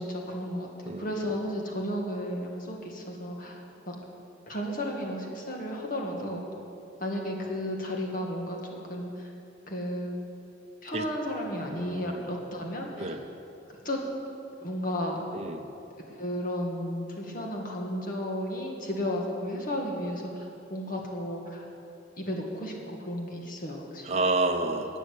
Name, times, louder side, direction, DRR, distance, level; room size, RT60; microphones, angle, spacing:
voice 1, 0.0-4.0 4.5-6.4 7.0-9.3 9.7-10.1 10.8-13.2 13.7-14.0 14.6-15.2 16.1-21.6 22.2-24.1, equal, 45° left, 0 dB, 2.0 m, -33 dB
voice 2, 11.7-12.2 13.0-13.2 15.3-15.7 24.0-25.0, right 2 dB, 35° right, 3 dB, 0.7 m, -29 dB
12.5 x 9.2 x 8.4 m, 2.9 s
head